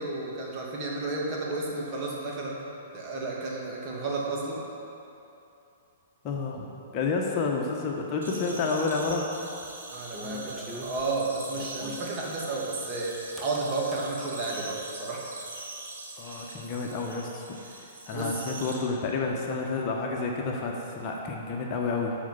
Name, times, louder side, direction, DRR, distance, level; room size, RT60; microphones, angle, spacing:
voice 1, 0.0-2.6 2.9-4.6 9.9-15.3 18.1-18.4, right 3 dB, 30° right, -4 dB, 2.4 m, -32 dB
voice 2, 6.2-6.7 6.9-9.3 16.2-17.4 18.0-22.2, left 4 dB, 35° left, -1 dB, 1.3 m, -29 dB
sound 1, 8.2-18.8, right 2 dB, 65° right, 2.1 m, -43 dB
sound 2, 9.4-12.1 13.4-14.1, left 2 dB, 5° left, 0.9 m, -44 dB
12.5 x 5.3 x 7.4 m, 2.8 s
figure-of-eight pair, 110°, 0 cm